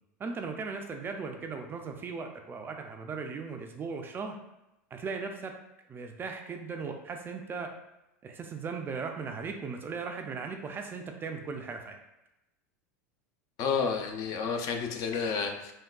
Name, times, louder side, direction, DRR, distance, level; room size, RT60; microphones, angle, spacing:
voice 1, 0.2-4.4 4.9-5.5 5.9-7.7 8.2-12.0, right 5 dB, 25° right, 4 dB, 0.3 m, -37 dB
voice 2, 13.6-15.7, left 5 dB, 50° left, 4 dB, 0.4 m, -30 dB
3.6 x 2.2 x 2.2 m, 0.90 s
hypercardioid pair, 105°, 8 cm